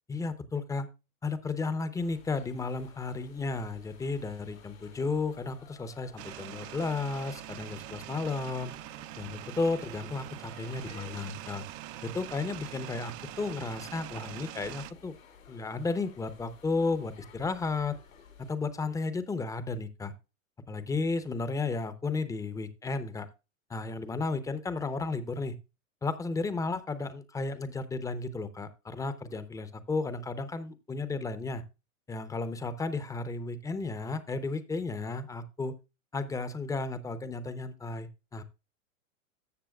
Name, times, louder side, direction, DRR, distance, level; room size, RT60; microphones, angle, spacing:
voice 1, 0.1-0.9 1.2-8.7 9.2-11.7 12.0-15.1 15.5-18.0 18.4-20.1 20.7-23.3 23.7-25.5 26.0-31.6 32.1-35.7 36.1-38.4, left 3 dB, 10° left, 13 dB, 0.7 m, -33 dB
sound 1, 1.9-18.6, left 6 dB, 90° left, 3.4 m, -55 dB
sound 2, 6.2-14.9, right 16 dB, 35° right, 0.5 m, -44 dB
13.5 x 7.3 x 2.3 m, 0.28 s
hypercardioid pair, 120°, 40 cm